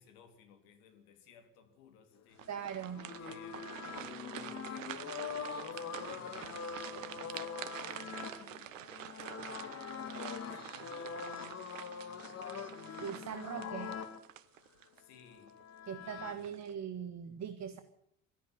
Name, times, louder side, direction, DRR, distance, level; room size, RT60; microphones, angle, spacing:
voice 1, 0.0-2.5 3.2-3.6 4.3-13.7 14.9-15.6 16.0-16.6, left 7 dB, 65° left, 3.7 m, -60 dB
sound 1, 2.3-15.0 15.5-15.6 16.2-16.7, right 12 dB, 80° right, 0.9 m, -47 dB
sound 2, 2.4-14.2 15.3-16.3, left 6 dB, 40° left, 2.4 m, -43 dB
voice 2, 2.5-3.1 13.0-14.0 15.9-17.8, right 8 dB, 45° right, 1.7 m, -41 dB
22.5 x 14.0 x 9.4 m
figure-of-eight pair, 50°, 38 cm